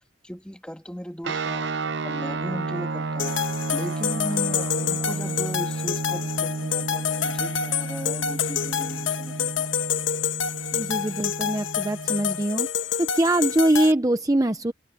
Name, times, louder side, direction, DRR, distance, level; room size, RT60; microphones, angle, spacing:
voice 1, 0.2-3.4 3.7-9.7, equal, 5° left, 2.7 m, -37 dB
sound 1, 1.2-12.4, right 3 dB, 65° right, 0.8 m, -32 dB
sound 2, 3.2-13.9, left 8 dB, 80° left, 1.3 m, -28 dB
voice 2, 10.7-12.7 13.0-14.7, right 1 dB, 20° right, 0.6 m, -23 dB
head